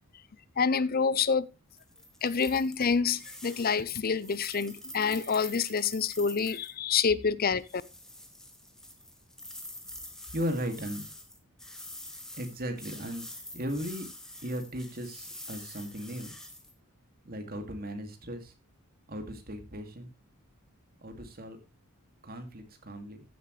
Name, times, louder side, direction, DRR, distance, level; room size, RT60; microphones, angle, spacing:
voice 1, 0.6-1.5 2.2-7.8, left 5 dB, 40° left, 0.6 m, -27 dB
sound 1, 1.8-6.7 7.7-16.7, left 1 dB, ahead, 1.5 m, -46 dB
voice 2, 10.3-11.1 12.4-14.1 14.4-16.3 17.2-18.5 19.1-20.1 21.0-21.6 22.2-23.2, equal, 40° right, 2.3 m, -37 dB
15.0 x 7.9 x 3.2 m
head